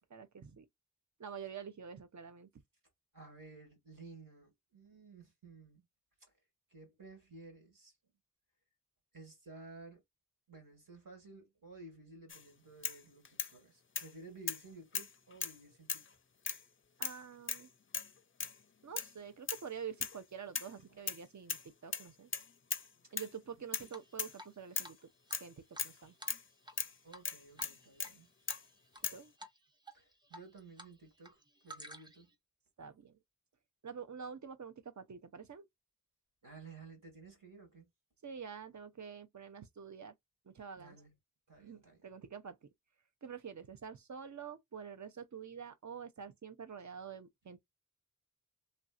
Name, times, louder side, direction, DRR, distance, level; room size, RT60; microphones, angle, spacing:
voice 1, 0.1-0.7 1.2-2.5 17.0-17.7 18.8-22.3 23.1-25.0 25.4-26.2 29.1-29.3 32.8-33.2 33.8-35.7 38.2-40.1 40.5-41.0 41.6-42.7 43.2-47.6, right 7 dB, 55° right, 0.6 m, -47 dB
voice 2, 3.1-5.8 6.7-7.9 9.1-10.0 10.5-16.0 20.9-21.0 27.0-28.3 29.9-32.3 36.4-37.9 40.8-41.1 41.5-42.0, right 3 dB, 70° right, 1.9 m, -54 dB
sound 1, 12.3-12.4 12.8-13.5 13.9-14.1 14.5-14.6 14.9-15.6 15.9-16.1 16.4-16.6 17.0-17.2 17.5-17.7 17.9-18.1 18.4-18.6 19.0-19.1 19.5-19.6 20.0-20.2 20.5-21.2 21.5-21.7 21.9-22.9 23.2-23.3 23.7-23.9 24.2-24.4 24.8-24.9 25.3-25.5 25.8-26.0 26.3-26.4 26.8-26.9 27.2-28.2 28.5-28.6 29.0-29.2, left 6 dB, 40° left, 0.4 m, -38 dB
Drip, 23.9-24.5 24.8-24.9 25.3-26.8 27.1-27.3 27.6-28.1 28.5-29.0 29.4-29.6 29.9-30.9 31.2-32.3, right 1 dB, 15° right, 0.6 m, -52 dB
3.2 x 2.6 x 2.4 m
wide cardioid pair, 60°, 34 cm